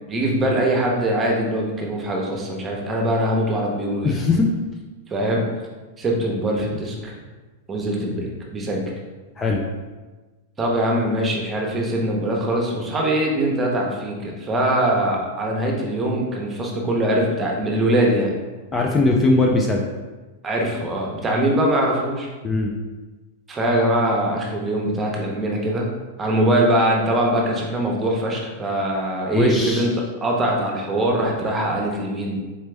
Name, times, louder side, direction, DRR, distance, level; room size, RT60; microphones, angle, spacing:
voice 1, 0.1-4.1 5.1-5.4 6.0-7.1 7.7-8.9 10.6-18.3 20.4-22.3 23.5-25.9 26.2-29.9 30.2-32.4, right 1 dB, 20° right, -1 dB, 0.9 m, -22 dB
voice 2, 4.0-4.5 9.4-9.6 18.7-19.8 22.4-22.7 29.3-29.8, left 3 dB, 20° left, -1 dB, 0.4 m, -19 dB
4.0 x 3.2 x 3.3 m, 1.2 s
hypercardioid pair, 125°, 0 cm